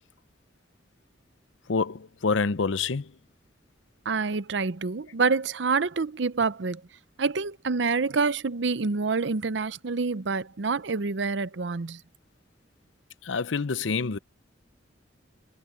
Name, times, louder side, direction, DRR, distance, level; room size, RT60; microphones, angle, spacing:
voice 1, 1.7-3.1 13.2-14.2, left 4 dB, 80° left, 0.7 m, -27 dB
voice 2, 4.1-6.8 7.2-12.0, right 4 dB, 65° right, 0.7 m, -27 dB
head